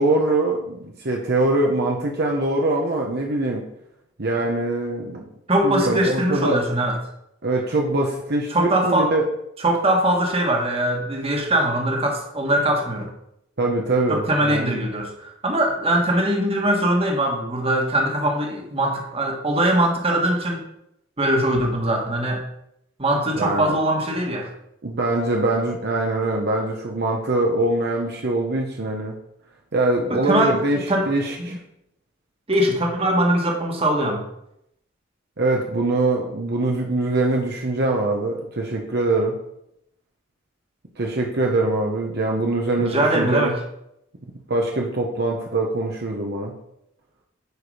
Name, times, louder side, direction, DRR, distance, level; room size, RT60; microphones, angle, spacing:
voice 1, 0.0-3.6 4.2-5.2 5.6-6.6 7.4-9.2 13.6-14.8 23.4-23.8 24.8-29.2 29.7-30.8 31.1-31.6 35.4-39.3 41.0-43.5 44.5-46.5, right 2 dB, 55° right, 0 dB, 1.1 m, -23 dB
voice 2, 5.5-7.0 8.5-9.1 9.6-13.1 14.1-20.6 21.2-22.4 23.0-24.5 30.1-31.1 31.4-31.5 32.5-34.2 42.8-43.5, right 1 dB, 30° right, 1 dB, 1.7 m, -21 dB
9.4 x 5.0 x 5.0 m, 0.79 s
head